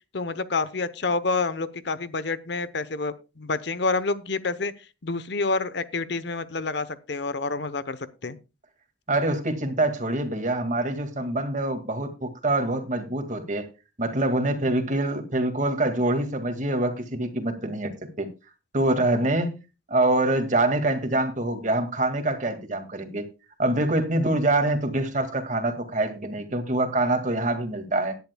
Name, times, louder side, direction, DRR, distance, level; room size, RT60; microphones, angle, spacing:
voice 1, 0.1-4.7 5.0-8.0 8.2-8.4, left 3 dB, 65° left, 0.9 m, -28 dB
voice 2, 9.1-13.7 14.0-18.3 18.7-19.6 19.9-23.3 23.6-28.2, right 2 dB, 40° right, 2.0 m, -25 dB
17.5 x 10.5 x 2.3 m
head